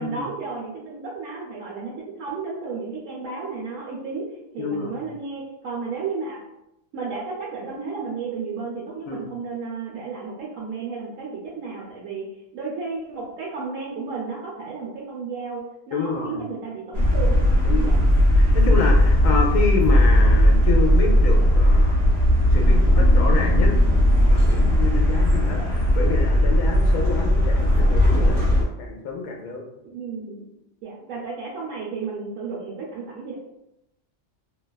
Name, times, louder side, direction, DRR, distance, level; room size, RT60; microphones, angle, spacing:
voice 1, 0.0-6.4 6.9-12.3 12.5-17.4 17.8-18.0 29.8-30.4 30.8-33.3, right 4 dB, 80° right, -5 dB, 1.0 m, -33 dB
voice 2, 4.6-5.0 9.1-9.3 15.9-16.4 17.6-18.0 18.5-22.0 22.5-23.7 24.3-28.5 28.8-29.7, left 4 dB, 85° left, 1 dB, 1.0 m, -28 dB
sound 1, 16.9-28.6, equal, 55° right, 0.8 m, -17 dB
2.7 x 2.3 x 2.3 m, 0.86 s
omnidirectional pair, 1.4 m